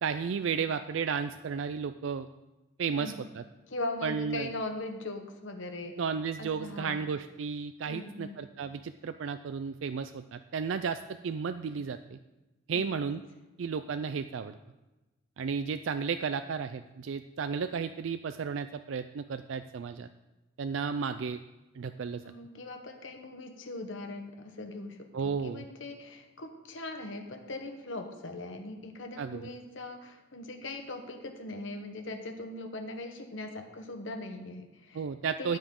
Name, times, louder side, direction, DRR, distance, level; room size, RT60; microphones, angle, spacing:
voice 1, 0.0-2.3 2.8-3.4 4.0-4.5 6.0-12.2 12.7-13.2 13.6-14.6 15.4-20.1 20.6-21.4 21.8-22.2 25.1-25.6 29.2-29.4 34.9-35.6, right 6 dB, 70° right, 10 dB, 0.4 m, -33 dB
voice 2, 3.7-6.0 6.4-7.0 7.9-8.4 12.7-13.1 22.2-35.0 35.4-35.6, left 2 dB, 70° left, 5 dB, 1.1 m, -40 dB
12.5 x 9.1 x 3.7 m, 1.1 s
head